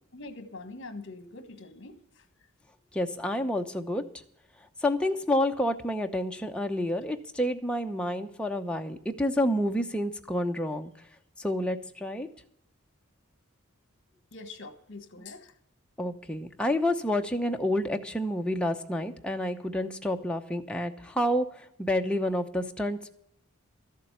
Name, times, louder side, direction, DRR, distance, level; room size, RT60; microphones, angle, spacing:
voice 1, 0.1-2.2 14.3-15.5, left 3 dB, 60° left, 10 dB, 1.6 m, -44 dB
voice 2, 2.9-4.0 4.8-10.9 11.4-12.3 16.0-21.5 21.8-23.1, left 1 dB, 5° left, 3 dB, 0.8 m, -29 dB
13.5 x 7.5 x 8.2 m, 0.72 s
head